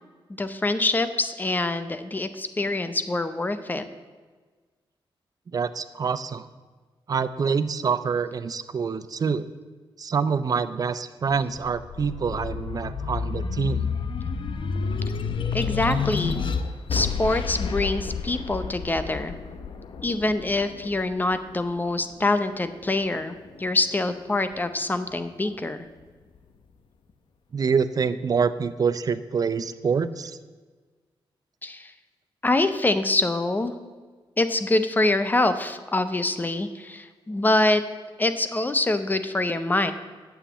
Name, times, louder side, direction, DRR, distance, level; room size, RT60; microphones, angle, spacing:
voice 1, 0.4-3.8 15.5-16.4 16.9-19.3 20.0-25.8 31.6-31.9 32.4-33.7 34.4-37.8 38.2-39.9, left 2 dB, 20° left, 11 dB, 0.7 m, -25 dB
voice 2, 5.5-6.5 7.1-9.5 10.0-13.9 27.5-30.4, right 5 dB, 40° right, 13 dB, 0.5 m, -26 dB
sound 1, 11.6-22.1 22.6-23.8, left 5 dB, 60° left, 0.8 m, -30 dB
8.8 x 7.2 x 8.2 m, 1.4 s
wide cardioid pair, 125°, 9 cm